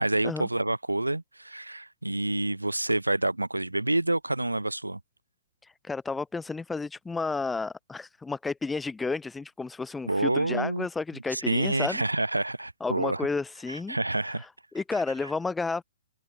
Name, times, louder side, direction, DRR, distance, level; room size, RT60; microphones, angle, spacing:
voice 1, 0.0-5.0 10.0-10.9 11.3-13.2 13.7-14.5, right 2 dB, 80° right, 0.8 m, -28 dB
voice 2, 5.6-12.0 12.8-14.0 14.3-14.5 14.7-15.8, left 4 dB, 5° left, 0.4 m, -32 dB
open air
figure-of-eight pair, 125°, 0 cm